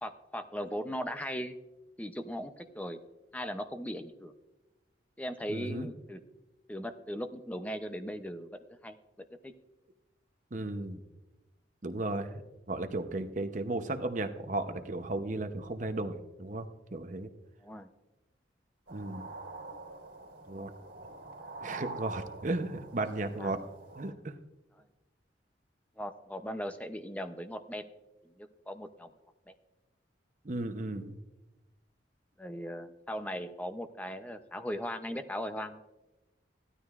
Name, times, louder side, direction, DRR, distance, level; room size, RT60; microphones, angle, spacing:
voice 1, 0.0-1.6 2.0-3.0 3.3-4.3 5.2-6.2 6.7-8.5 8.8-9.0 9.4-9.5 17.6-17.9 23.4-23.5 26.0-27.9 28.4-29.1 32.4-35.8, equal, 10° left, 8 dB, 0.6 m, -38 dB
voice 2, 5.5-5.9 10.5-11.0 11.8-12.3 12.7-17.3 18.9-19.3 20.5-20.7 21.6-23.6 24.0-24.3 30.4-31.2, right 2 dB, 45° right, 8 dB, 0.8 m, -35 dB
sound 1, 18.9-24.1, right 3 dB, 80° right, 3.2 m, -45 dB
17.0 x 12.5 x 2.5 m, 1.0 s
head